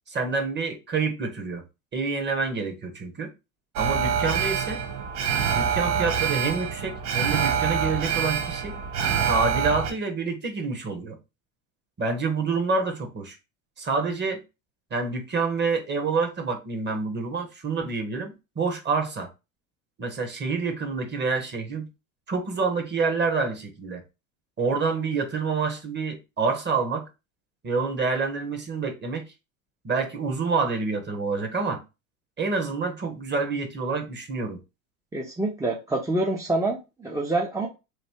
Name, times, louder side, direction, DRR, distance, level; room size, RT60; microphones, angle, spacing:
voice 1, 0.1-1.6 1.9-3.3 3.8-4.8 5.5-8.7 9.2-11.2 12.0-13.4 13.8-14.4 14.9-19.3 20.0-21.9 22.3-24.0 24.6-27.1 27.6-29.3 29.8-31.8 32.4-34.6, right 4 dB, 25° right, 1.2 m, -27 dB
Alarm, 3.8-9.9, right 7 dB, 70° right, 1.2 m, -26 dB
voice 2, 35.1-37.7, right 2 dB, 10° right, 0.6 m, -26 dB
3.2 x 2.7 x 4.3 m
supercardioid pair, 105°, 42 cm